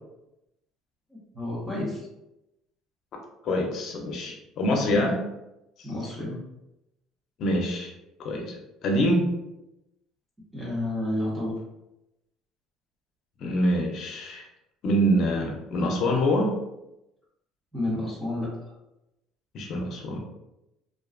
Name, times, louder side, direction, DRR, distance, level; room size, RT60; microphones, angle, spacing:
voice 1, 1.1-2.1 4.9-5.0 5.8-6.4 10.5-11.6 17.7-18.7, left 1 dB, 15° right, -7 dB, 0.8 m, -30 dB
voice 2, 3.4-5.2 7.4-7.9 8.2-9.3 13.4-14.5 14.8-16.6 19.5-20.2, equal, 55° left, 2 dB, 0.6 m, -25 dB
2.4 x 2.3 x 2.3 m, 0.90 s
supercardioid pair, 95°, 0 cm